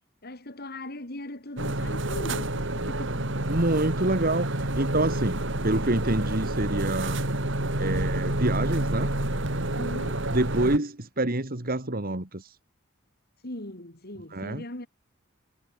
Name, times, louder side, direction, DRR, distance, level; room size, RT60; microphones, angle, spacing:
voice 1, 0.2-3.8 9.8-10.2 13.4-14.9, left 1 dB, 55° left, 3.9 m, -40 dB
sound 1, 1.6-10.8, right 1 dB, 65° right, 3.7 m, -29 dB
voice 2, 3.5-7.2 7.8-9.1 10.3-12.6 14.3-14.6, right 1 dB, 50° right, 2.5 m, -27 dB
head